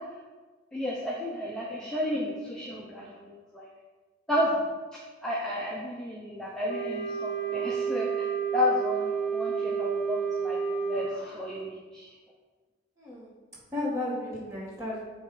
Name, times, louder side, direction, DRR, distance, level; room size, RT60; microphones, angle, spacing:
voice 1, 0.7-3.7 4.3-4.5 5.2-12.1, left 1 dB, 5° left, -5 dB, 0.7 m, -32 dB
Wind instrument woodwind instrument, 6.7-11.1, right 6 dB, 55° left, 0.5 m, -30 dB
voice 2, 13.0-13.3 13.7-15.0, left 2 dB, 15° right, -6 dB, 2.1 m, -33 dB
8.7 x 3.2 x 5.0 m, 1.4 s
head